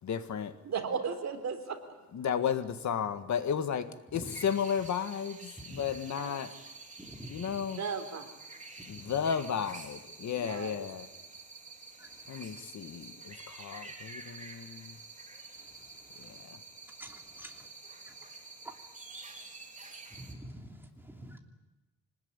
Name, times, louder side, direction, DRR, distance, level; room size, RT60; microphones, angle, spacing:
voice 1, 0.0-0.6 2.1-6.5 7.3-7.8 8.8-11.1 12.3-15.0 16.1-16.6, left 7 dB, 65° left, 1.7 m, -34 dB
voice 2, 0.6-1.8 6.2-6.3 7.8-8.3 10.4-10.8, right 6 dB, 60° right, 3.8 m, -35 dB
sound 1, 4.3-20.3, right 3 dB, 25° right, 3.4 m, -49 dB
voice 3, 7.0-7.4 8.9-9.0 12.0-12.1 17.0-17.5 18.1-18.2 18.6-18.7 20.1-21.4, right 1 dB, 5° right, 3.0 m, -47 dB
25.5 x 20.0 x 9.8 m
wide cardioid pair, 135°, 31 cm